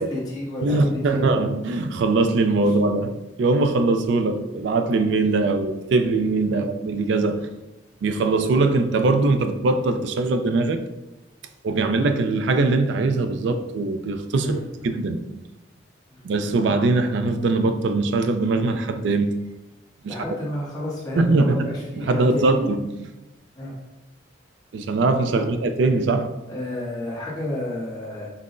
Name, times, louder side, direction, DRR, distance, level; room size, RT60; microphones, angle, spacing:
voice 1, 0.0-1.3 6.5-6.6 11.7-11.8 14.4-14.6 16.1-16.2 20.0-22.6 23.6-23.7 25.3-25.5 26.5-28.3, left 1 dB, 20° left, -6 dB, 0.9 m, -31 dB
voice 2, 0.6-7.5 8.0-10.8 11.6-15.3 16.2-19.4 20.0-20.1 21.2-21.7 22.0-23.1 24.7-26.3, right 3 dB, 70° right, 8 dB, 0.3 m, -21 dB
5.5 x 2.0 x 2.5 m, 0.99 s
head